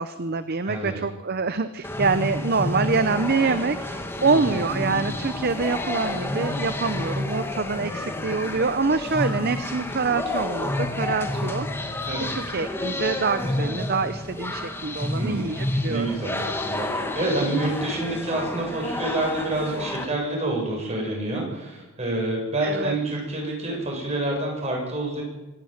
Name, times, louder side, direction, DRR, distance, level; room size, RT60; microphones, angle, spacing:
voice 1, 0.0-11.9 12.3-16.1 22.6-22.9, right 4 dB, 45° right, 12 dB, 0.7 m, -26 dB
voice 2, 0.6-1.0 4.2-4.6 12.1-12.3 15.1-15.5 15.9-25.2, right 2 dB, 30° right, 0 dB, 7.7 m, -28 dB
sound 1, 1.8-20.0, left 1 dB, 10° left, 1.7 m, -30 dB
25.5 x 11.5 x 9.5 m, 1.1 s
head